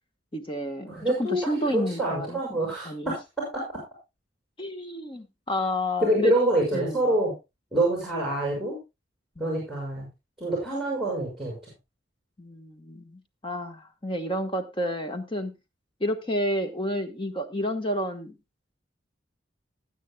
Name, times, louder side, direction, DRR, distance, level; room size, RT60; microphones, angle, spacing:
voice 1, 0.3-2.4 2.8-3.1 4.6-6.3 6.7-7.1 9.4-9.5 12.4-15.5 16.0-18.3, left 1 dB, 25° left, 7 dB, 1.2 m, -30 dB
voice 2, 0.9-1.4 1.7-3.1 3.5-3.6 6.0-7.3 7.7-8.8 9.4-10.1 10.4-11.5, right 1 dB, ahead, -2 dB, 6.5 m, -26 dB
20.0 x 9.2 x 2.2 m, 0.25 s
head